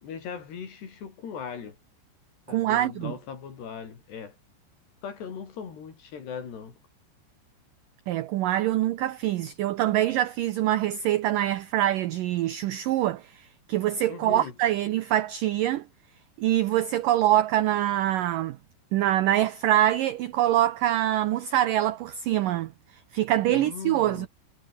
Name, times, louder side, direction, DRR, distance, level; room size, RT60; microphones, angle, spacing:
voice 1, 0.0-1.8 2.5-4.4 5.0-6.8 14.1-14.5 23.5-24.3, left 6 dB, 70° left, 6.5 m, -39 dB
voice 2, 2.5-3.1 8.1-15.8 16.4-18.6 18.9-22.7 23.1-24.3, right 13 dB, 80° right, 1.9 m, -24 dB
omnidirectional pair, 4.9 m